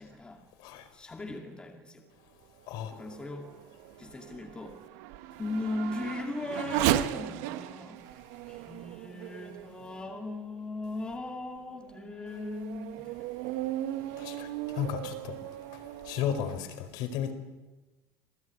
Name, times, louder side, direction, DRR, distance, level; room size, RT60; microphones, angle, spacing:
voice 1, 0.0-0.4 0.9-2.1 2.8-3.6 4.0-4.9 5.4-8.2 8.5-13.3 14.1-14.2, left 2 dB, 10° left, 2.4 m, -38 dB
Race car auto racing / Accelerating revving vroom, 2.6-10.5 11.1-11.2 11.8-16.6, right 13 dB, 70° right, 1.6 m, -36 dB
voice 2, 14.2-15.4 15.7-17.3, left 9 dB, 55° left, 4.3 m, -34 dB
27.5 x 19.0 x 9.5 m
cardioid pair, 165°, 9 cm